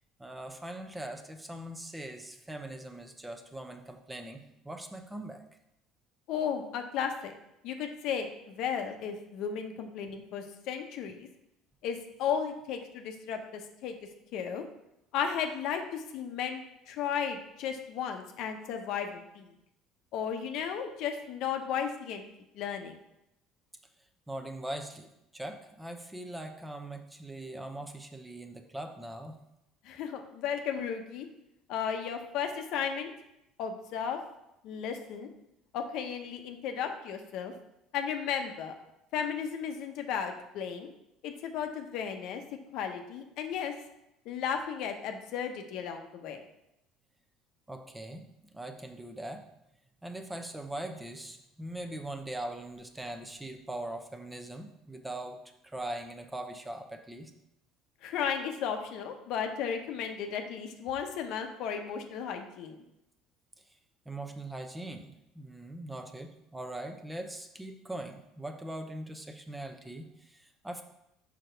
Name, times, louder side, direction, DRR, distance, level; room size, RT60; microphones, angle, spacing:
voice 1, 0.2-5.4 24.3-29.3 47.7-49.4 50.0-57.3 64.1-70.8, right 1 dB, 10° right, 6 dB, 0.7 m, -41 dB
voice 2, 6.3-7.3 7.6-11.3 11.8-13.9 14.3-14.6 15.1-19.5 20.1-22.2 22.5-23.0 29.8-31.3 31.7-33.1 33.6-34.2 34.6-35.3 35.7-37.5 37.9-38.7 39.1-40.9 41.2-42.4 42.7-43.7 44.3-46.4 58.0-62.8, left 7 dB, 70° left, 5 dB, 0.8 m, -34 dB
5.2 x 4.9 x 4.5 m, 0.85 s
supercardioid pair, 95°, 0 cm